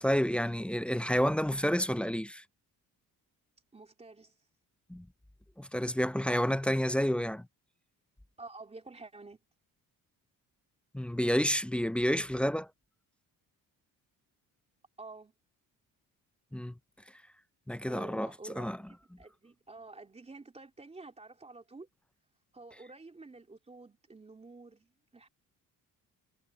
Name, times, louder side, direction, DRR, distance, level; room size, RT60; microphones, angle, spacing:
voice 1, 0.0-2.4 4.9-5.1 5.6-7.5 10.9-12.7 16.5-16.7 17.7-18.3 18.6-18.8, equal, 5° left, 0.3 m, -29 dB
voice 2, 3.7-4.4 8.4-9.4 15.0-15.3 17.9-21.9 22.5-25.3, right 3 dB, 15° right, 3.4 m, -49 dB
cardioid pair, 125°, 36 cm